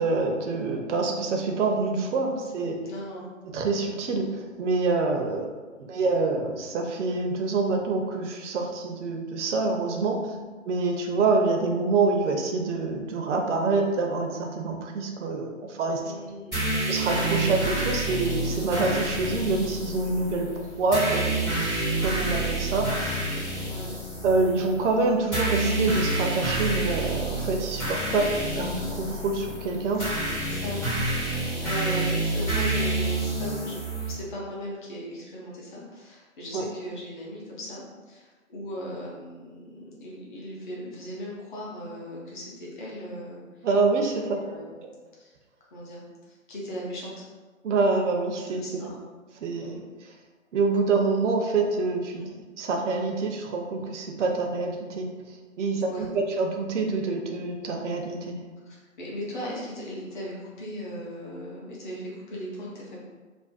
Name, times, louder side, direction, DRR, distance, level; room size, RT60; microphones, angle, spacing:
voice 1, 0.0-2.8 3.5-5.5 5.8-10.2 10.6-16.0 16.9-23.5 24.2-30.2 36.5-36.7 43.6-44.4 47.6-48.8 49.4-49.8 50.5-52.2 52.6-55.1 55.6-58.4, right 3 dB, 60° right, 2 dB, 0.5 m, -26 dB
voice 2, 2.8-3.3 5.8-5.9 10.3-10.5 16.0-16.7 23.6-23.9 29.9-30.2 30.4-30.8 31.2-33.8 34.1-43.7 44.0-44.1 44.4-44.8 45.2-45.3 45.7-47.2 48.6-49.0 49.5-49.9 52.2-52.3 55.8-56.1 58.6-63.0, equal, 35° left, -5 dB, 0.7 m, -38 dB
sound 1, 16.5-34.1, right 2 dB, 5° left, 0.4 m, -28 dB
2.5 x 2.1 x 2.3 m, 1.3 s
hypercardioid pair, 140°, 41 cm